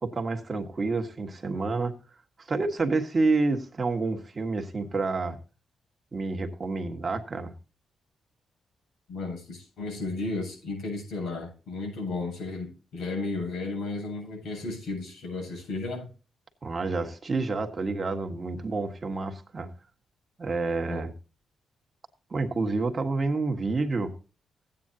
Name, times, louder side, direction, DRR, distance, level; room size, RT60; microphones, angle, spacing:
voice 1, 0.0-1.9 2.4-5.4 6.1-7.5 16.6-19.7 20.4-21.1 22.3-24.1, right 3 dB, 30° right, 1.5 m, -28 dB
voice 2, 9.1-16.1 20.9-21.0, left 3 dB, 85° left, 7.3 m, -34 dB
15.5 x 9.0 x 2.8 m
cardioid pair, 110°, 0 cm